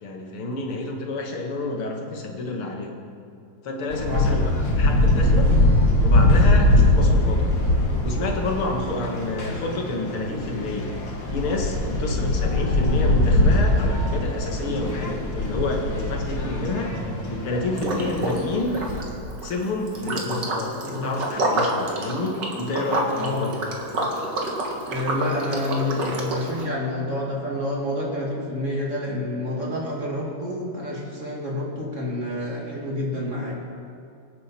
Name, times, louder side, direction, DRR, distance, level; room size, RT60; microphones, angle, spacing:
voice 1, 0.0-3.0 3.6-5.5 6.0-7.5 8.0-10.9 11.3-16.9 17.3-18.8 19.4-23.6, left 2 dB, 85° left, 1 dB, 2.5 m, -29 dB
sound 1, 3.9-19.0, left 1 dB, 60° left, 2.4 m, -22 dB
Liquid, 17.8-18.4 18.7-26.7, right 1 dB, 55° right, 2.3 m, -28 dB
voice 2, 20.1-21.2 23.2-23.5 24.9-33.5, left 1 dB, 35° right, -3 dB, 2.7 m, -29 dB
25.0 x 9.4 x 4.4 m, 2.5 s
omnidirectional pair, 2.4 m